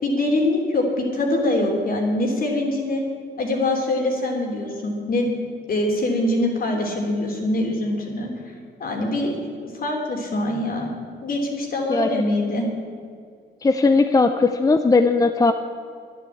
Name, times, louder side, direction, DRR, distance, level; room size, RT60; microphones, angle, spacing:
voice 1, 0.0-3.0 3.4-5.3 5.7-8.3 8.8-9.4 9.6-10.9 11.2-12.7, left 1 dB, 50° left, 1 dB, 3.3 m, -23 dB
voice 2, 13.6-15.5, left 3 dB, 20° left, 8 dB, 0.6 m, -18 dB
11.0 x 10.5 x 8.5 m, 2.2 s
cardioid pair, 115°, 19 cm